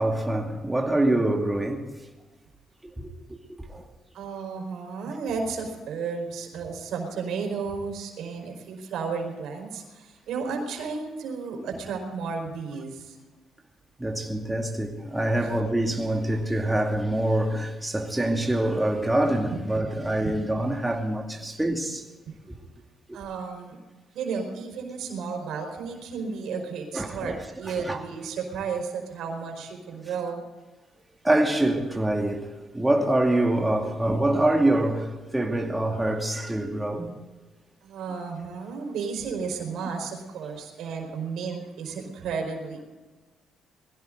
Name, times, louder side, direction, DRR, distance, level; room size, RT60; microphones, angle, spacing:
voice 1, 0.0-1.9 3.0-3.1 3.6-3.8 14.0-22.0 22.5-22.6 23.1-23.2 26.9-27.4 27.7-28.0 31.2-37.1, right 1 dB, 10° right, 2.5 m, -25 dB
voice 2, 4.1-13.2 15.3-15.5 20.2-20.4 23.1-23.8 24.1-30.4 37.8-42.8, right 5 dB, 80° right, 4.6 m, -33 dB
21.0 x 16.5 x 3.9 m
cardioid pair, 90°, 0 cm